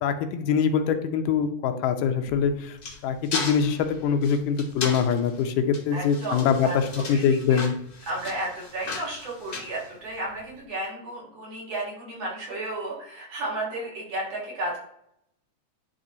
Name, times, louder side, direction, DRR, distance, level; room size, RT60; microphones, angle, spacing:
voice 1, 0.0-2.8 3.0-7.7, left 7 dB, 85° left, 7 dB, 2.3 m, -24 dB
sound 1, 2.2-10.5, left 3 dB, 50° left, 1.1 m, -36 dB
voice 2, 5.9-7.2 7.5-7.6 8.1-14.8, right 1 dB, 55° right, -5 dB, 3.8 m, -33 dB
10.0 x 3.5 x 3.9 m, 0.74 s
omnidirectional pair, 3.7 m